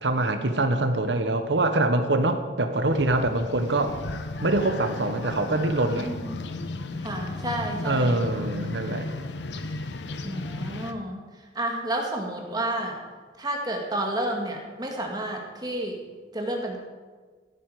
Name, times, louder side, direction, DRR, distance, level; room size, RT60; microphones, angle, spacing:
voice 1, 0.0-3.9 4.4-6.1 7.8-9.1, right 2 dB, 90° right, 8 dB, 1.2 m, -24 dB
sound 1, 2.9-10.9, left 2 dB, 85° left, 0.9 m, -35 dB
voice 2, 5.9-6.4 7.0-8.2 10.2-11.2 11.6-13.0 13.4-16.0 16.3-16.8, right 1 dB, 25° right, 1 dB, 2.0 m, -30 dB
15.5 x 9.5 x 5.0 m, 1.5 s
head